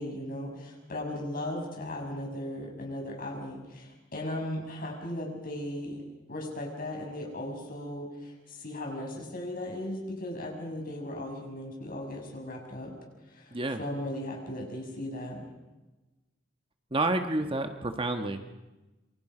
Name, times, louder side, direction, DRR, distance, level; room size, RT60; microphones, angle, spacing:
voice 1, 0.0-6.0 6.3-12.9 13.3-15.4, left 1 dB, 45° left, 0 dB, 6.5 m, -37 dB
voice 2, 16.9-18.6, right 2 dB, 25° right, 6 dB, 1.3 m, -30 dB
27.5 x 24.0 x 5.0 m, 1.1 s
head